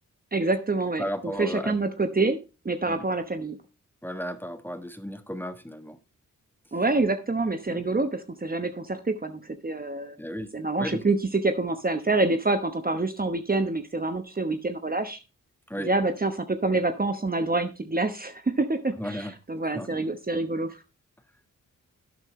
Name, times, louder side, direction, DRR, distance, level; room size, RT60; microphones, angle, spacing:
voice 1, 0.3-1.0 1.4-2.4 2.6-3.6 6.7-10.2 10.5-11.2 11.4-15.2 15.8-19.2 19.5-20.8, right 3 dB, 25° right, 8 dB, 1.0 m, -26 dB
voice 2, 1.0-1.8 2.9-3.0 4.0-6.0 7.7-7.8 10.2-11.1 15.7-15.9 19.0-20.0, equal, 5° left, 9 dB, 1.3 m, -35 dB
11.5 x 9.0 x 3.1 m, 0.29 s
cardioid pair, 55°, 34 cm